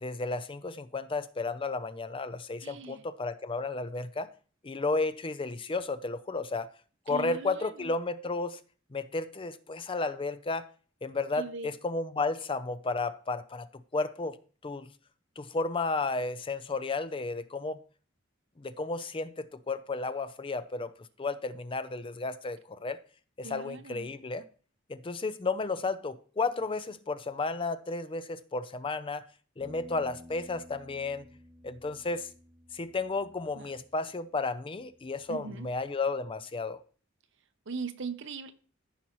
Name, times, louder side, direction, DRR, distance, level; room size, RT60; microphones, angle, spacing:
voice 1, 0.0-4.3 4.6-6.7 7.1-8.6 8.9-10.7 11.0-14.4 14.6-14.9 15.4-17.8 18.6-20.9 21.2-23.0 23.4-24.5 24.9-29.2 29.6-31.3 31.6-32.3 32.7-36.8, left 3 dB, 25° left, 0.5 m, -33 dB
voice 2, 2.6-3.0 7.1-7.9 11.3-11.7 23.4-24.1 33.6-33.7 35.3-35.7 37.7-38.5, right 4 dB, 65° right, 0.8 m, -39 dB
sound 1, 29.6-35.9, left 1 dB, 20° right, 0.8 m, -54 dB
14.5 x 5.4 x 3.0 m
head